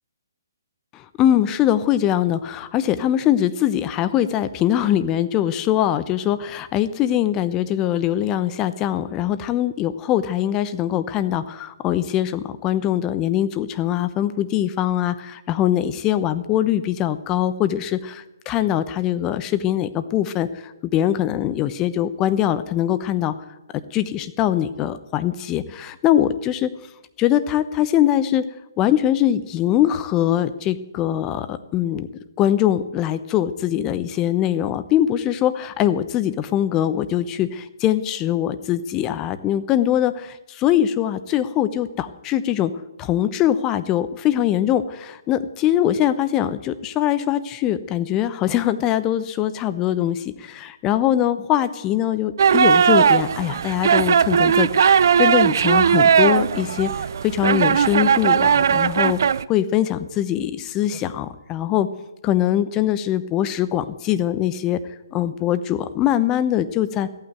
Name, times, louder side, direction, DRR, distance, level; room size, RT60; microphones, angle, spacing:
voice 1, 0.9-23.3 23.7-26.7 27.2-28.4 28.8-32.1 32.4-42.7 43.0-56.9 57.2-59.2 59.5-61.9 62.2-64.8 65.1-67.1, left 11 dB, 20° left, 12 dB, 0.8 m, -22 dB
sound 1, 52.4-59.4, right 7 dB, 60° right, 0.4 m, -18 dB
14.0 x 9.0 x 9.0 m, 0.98 s
figure-of-eight pair, 135°, 2 cm